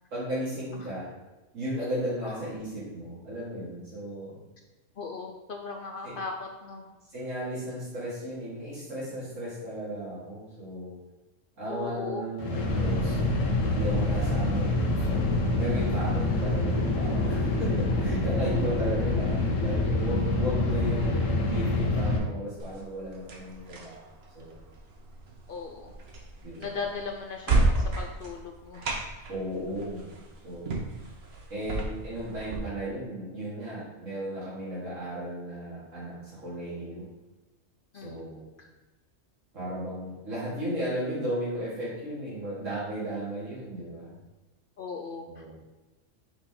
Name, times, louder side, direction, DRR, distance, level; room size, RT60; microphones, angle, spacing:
voice 1, 0.1-1.1 1.5-4.4 6.0-6.2 7.1-10.9 11.6-13.2 13.7-24.1 24.3-24.6 26.4-26.8 29.3-30.1 30.4-30.7 31.5-37.1 38.0-38.4 39.5-44.1 45.3-45.6, right 1 dB, 85° right, -10 dB, 2.6 m, -35 dB
voice 2, 5.0-6.9 11.7-12.3 25.5-25.9 26.6-29.0 37.9-38.3 38.6-38.7 44.8-45.4, left 4 dB, 60° left, 3 dB, 0.6 m, -38 dB
sound 1, 12.4-22.2, left 2 dB, 85° left, 1.2 m, -26 dB
sound 2, 22.6-32.6, right 2 dB, 55° right, 1.1 m, -32 dB
5.7 x 4.3 x 3.8 m, 1.1 s
omnidirectional pair, 1.3 m